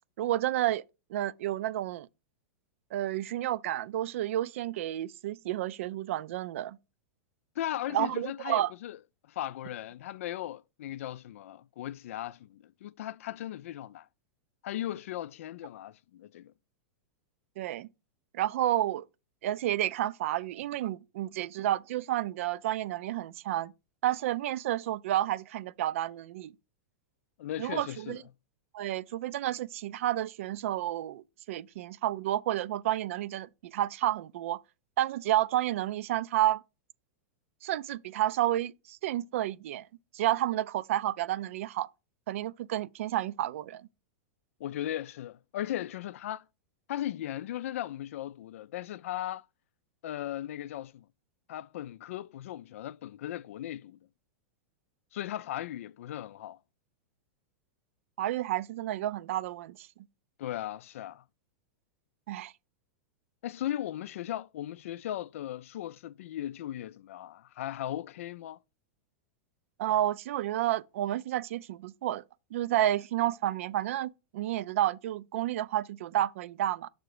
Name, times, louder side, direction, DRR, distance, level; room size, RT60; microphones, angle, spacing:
voice 1, 0.2-0.8 1.1-2.1 2.9-6.8 7.9-8.7 17.6-17.9 18.3-19.0 19.4-23.7 24.0-26.5 27.6-28.2 28.7-34.6 35.0-36.6 37.6-39.9 40.1-41.9 42.3-43.9 58.2-59.9 62.3-62.5 69.8-72.2 72.5-76.9, right 13 dB, 70° right, 0.4 m, -30 dB
voice 2, 7.6-9.0 9.3-14.1 14.6-16.5 27.4-28.2 44.6-46.4 46.9-49.4 50.0-51.0 51.5-54.0 55.1-56.6 60.4-61.2 63.4-68.6, left 12 dB, 75° left, 0.3 m, -37 dB
6.6 x 3.9 x 4.8 m
hypercardioid pair, 120°, 7 cm